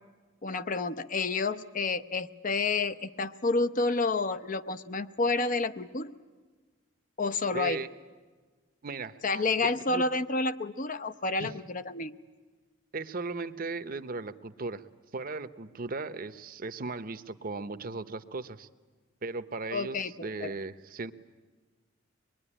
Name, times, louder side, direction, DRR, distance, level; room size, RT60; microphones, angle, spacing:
voice 1, 0.4-6.1 7.2-7.8 9.2-12.1 19.7-20.5, left 3 dB, 45° left, 11 dB, 0.8 m, -29 dB
voice 2, 7.5-7.9 8.8-10.0 11.4-11.5 12.9-14.8 15.1-18.7 19.2-21.1, right 3 dB, 45° right, 11 dB, 0.9 m, -37 dB
24.0 x 21.5 x 10.0 m, 1.4 s
head